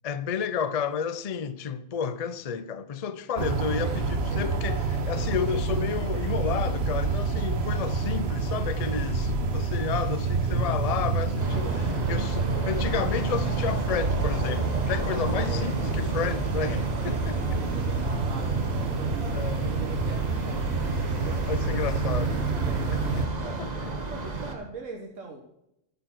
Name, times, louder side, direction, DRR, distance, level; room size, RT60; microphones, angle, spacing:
voice 1, 0.0-4.8 5.1-11.7 12.1-16.8 17.0-17.6 19.3-19.7 21.5-22.4 22.9-23.2 23.6-23.9, left 7 dB, 45° left, 0.5 m, -31 dB
sound 1, 3.4-23.3, right 4 dB, 55° right, 1.2 m, -28 dB
voice 2, 3.6-4.7 11.5-12.0 12.5-12.9 15.3-16.0 16.6-17.2 17.5-20.9 21.2-23.7 24.0-25.4, right 3 dB, 85° right, 1.7 m, -42 dB
sound 2, 11.4-24.5, right 3 dB, 35° right, 1.4 m, -33 dB
11.5 x 6.8 x 6.0 m
omnidirectional pair, 1.3 m